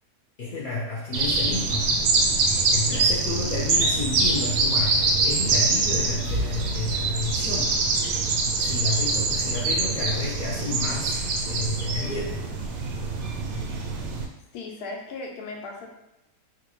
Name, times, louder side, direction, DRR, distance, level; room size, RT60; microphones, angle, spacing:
voice 1, 0.4-2.0 2.7-7.7 8.6-12.4, left 3 dB, 60° left, -6 dB, 0.5 m, -31 dB
sound 1, 1.1-14.3, right 3 dB, 70° right, 0.7 m, -24 dB
sound 2, 6.2-9.9, equal, 30° right, 0.6 m, -36 dB
voice 2, 14.5-15.9, left 3 dB, 80° left, 1 dB, 1.1 m, -36 dB
4.0 x 2.5 x 3.0 m, 0.89 s
omnidirectional pair, 1.6 m